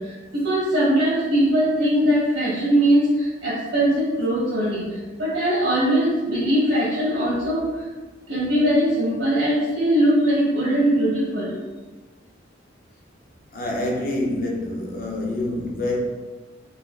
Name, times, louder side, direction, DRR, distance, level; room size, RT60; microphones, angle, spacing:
voice 1, 0.0-7.8 8.3-11.5, right 1 dB, 85° right, -10 dB, 1.3 m, -21 dB
voice 2, 13.5-16.0, left 1 dB, 50° left, 0 dB, 0.6 m, -26 dB
4.0 x 2.5 x 2.3 m, 1.3 s
head